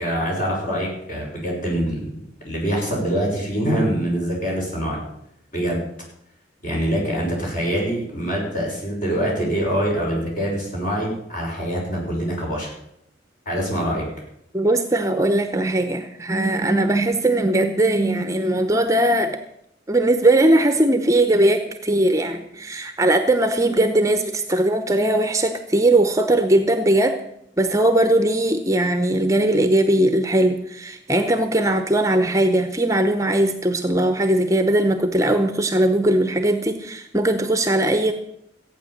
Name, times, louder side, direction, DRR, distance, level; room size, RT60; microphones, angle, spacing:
voice 1, 0.0-2.1 2.4-5.0 5.5-5.8 6.6-12.7 13.5-14.1, equal, 45° left, -2 dB, 5.8 m, -24 dB
voice 2, 14.5-19.4 19.9-27.2 27.6-38.1, right 1 dB, 15° right, 8 dB, 0.8 m, -19 dB
14.5 x 9.0 x 7.3 m, 0.77 s
head